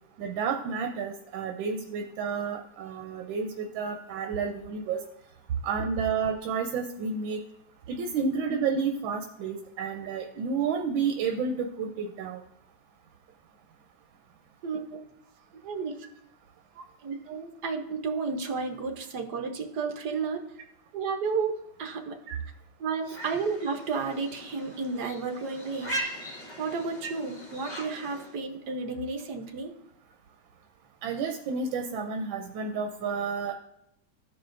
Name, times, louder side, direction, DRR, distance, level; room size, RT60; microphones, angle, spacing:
voice 1, 0.2-5.0 5.6-7.4 7.9-12.4 22.3-22.4 23.1-23.2 31.0-33.5, right 5 dB, 85° right, 4 dB, 1.4 m, -31 dB
voice 2, 14.6-15.0 15.6-15.9 16.7-20.4 20.9-22.2 22.8-26.0 26.6-29.7, right 4 dB, 65° right, 4 dB, 1.3 m, -32 dB
sound 1, 23.1-28.4, right 1 dB, 25° left, 1.4 m, -39 dB
14.5 x 4.9 x 2.5 m, 0.79 s
omnidirectional pair, 2.1 m